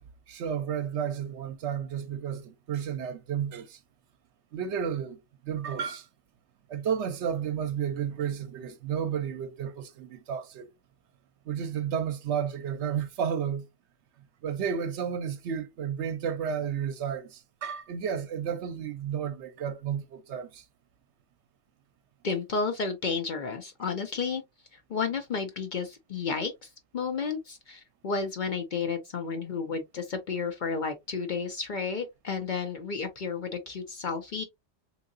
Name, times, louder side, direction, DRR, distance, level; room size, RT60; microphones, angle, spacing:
voice 1, 0.3-3.8 4.5-5.2 5.5-6.0 6.7-10.7 11.5-13.7 14.4-20.6, right 8 dB, 75° right, 0.9 m, -32 dB
voice 2, 22.2-24.4 24.7-34.4, left 5 dB, 55° left, 0.6 m, -32 dB
3.6 x 2.9 x 2.5 m
omnidirectional pair, 1.2 m